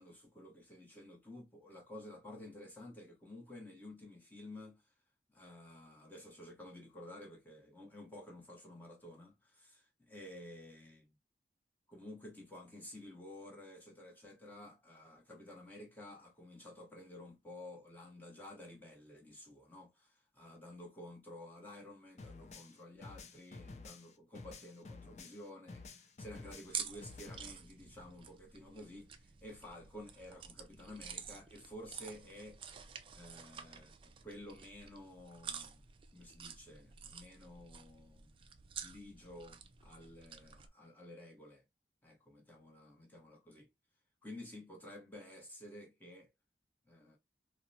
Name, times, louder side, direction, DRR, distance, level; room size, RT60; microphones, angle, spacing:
voice 1, 0.0-4.8 5.3-11.1 11.9-32.6 33.1-35.8 36.1-38.3 38.8-41.6 42.0-43.7 44.2-46.3 46.9-47.2, left 1 dB, 10° left, 0.9 m, -52 dB
sound 1, 22.2-25.4 25.7-27.5, left 3 dB, 40° left, 0.4 m, -51 dB
sound 2, 26.6-40.7, right 7 dB, 30° right, 0.3 m, -49 dB
4.2 x 2.1 x 2.6 m
head